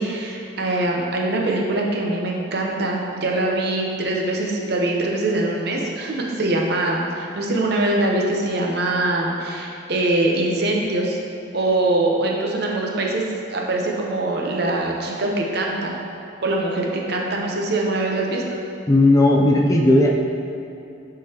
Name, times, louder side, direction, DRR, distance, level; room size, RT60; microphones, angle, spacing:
voice 1, 0.0-11.2 11.5-16.0 16.4-18.4, right 2 dB, 55° right, -1 dB, 0.7 m, -23 dB
voice 2, 18.9-20.1, left 1 dB, 15° left, -1 dB, 0.4 m, -15 dB
9.4 x 3.8 x 2.9 m, 2.6 s
head